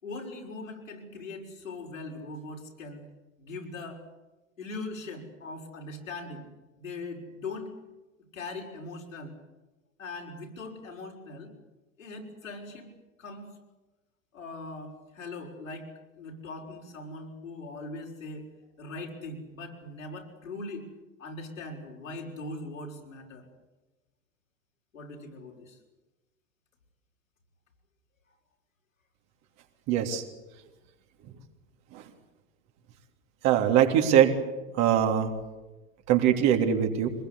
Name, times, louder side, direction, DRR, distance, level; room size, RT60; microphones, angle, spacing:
voice 1, 0.0-3.0 3.4-4.0 4.6-6.4 6.8-7.7 8.3-9.3 10.0-11.5 12.0-12.9 13.2-13.5 14.3-15.9 16.2-18.5 18.8-20.9 21.2-23.5 24.9-25.8, left 2 dB, 75° left, 0 dB, 5.9 m, -40 dB
voice 2, 29.9-30.2 31.9-32.0 33.4-34.3 34.7-35.3 36.1-37.1, right 9 dB, 40° right, 4 dB, 3.3 m, -22 dB
25.0 x 21.0 x 8.4 m, 1.1 s
figure-of-eight pair, 85°, 40 cm